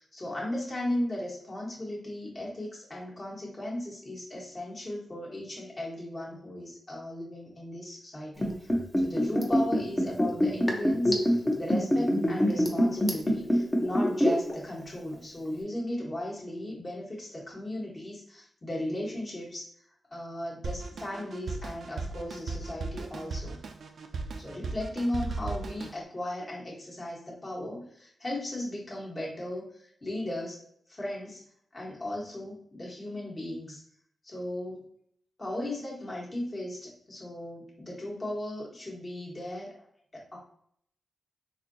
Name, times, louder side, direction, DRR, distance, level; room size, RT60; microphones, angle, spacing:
voice 1, 0.0-19.7 20.1-23.6 24.4-29.6 30.0-30.6 30.9-31.4 31.7-33.8 34.2-34.8 35.4-39.7 40.1-40.4, left 1 dB, 30° left, -4 dB, 1.2 m, -36 dB
Liquid, 8.4-14.5 14.8-14.9, equal, 15° left, 0.7 m, -24 dB
Drum kit, 20.6-26.0, right 3 dB, 70° right, 0.4 m, -37 dB
4.2 x 2.7 x 2.6 m, 0.65 s
wide cardioid pair, 135°, 0 cm